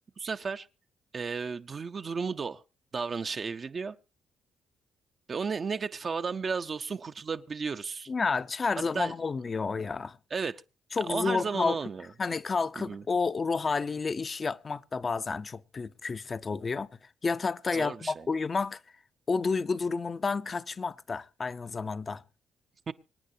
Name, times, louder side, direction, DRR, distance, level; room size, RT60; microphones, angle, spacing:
voice 1, 0.2-0.7 1.1-2.6 2.9-4.0 5.3-8.1 8.9-9.1 10.3-10.6 11.1-12.1 12.9-13.0 17.7-18.3 22.9-23.0, right 5 dB, 40° right, 0.6 m, -33 dB
voice 2, 8.1-10.2 10.9-11.8 12.2-18.8 19.3-22.2, left 4 dB, 35° left, 0.6 m, -30 dB
25.5 x 9.2 x 2.7 m
cardioid pair, 90°, 0 cm